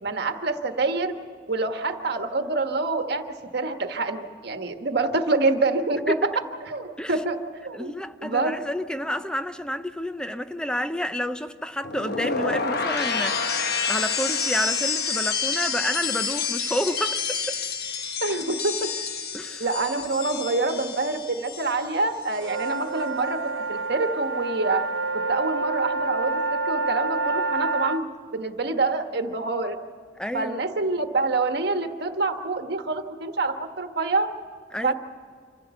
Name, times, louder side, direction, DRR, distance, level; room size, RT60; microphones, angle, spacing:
voice 1, 0.0-1.1 1.5-3.2 3.5-6.1 6.7-7.4 7.6-7.9 8.2-8.6 18.2-18.9 19.6-23.4 23.7-24.8 25.1-28.1 28.3-29.8 30.3-34.3 34.8-34.9, right 3 dB, 60° right, 1.3 m, -26 dB
voice 2, 7.7-13.6 13.9-17.6 19.3-19.6 30.2-30.6 34.7-34.9, equal, 5° left, 0.6 m, -29 dB
sound 1, 11.8-21.9 22.2-22.7, left 5 dB, 55° left, 1.1 m, -28 dB
sound 2, 22.4-28.0, right 3 dB, 85° right, 0.7 m, -28 dB
26.0 x 15.5 x 7.0 m
head